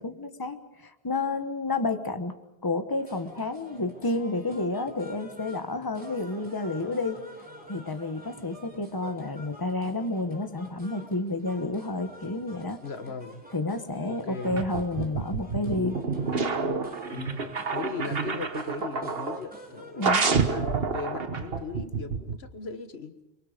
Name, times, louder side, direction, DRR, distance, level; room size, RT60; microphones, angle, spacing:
voice 1, 0.0-2.4 2.6-7.2 7.7-12.8 13.5-16.0 20.0-20.3, left 2 dB, 20° left, 8 dB, 1.3 m, -30 dB
sound 1, 3.0-20.5, equal, 10° right, 3.5 m, -48 dB
voice 2, 12.8-13.4 14.1-14.6 17.1-20.1 20.4-23.1, left 4 dB, 85° left, 9 dB, 1.7 m, -38 dB
sound 2, 14.4-19.5 20.0-22.4, right 4 dB, 70° right, 1.6 m, -29 dB
30.0 x 23.0 x 5.2 m, 0.94 s
omnidirectional pair, 1.0 m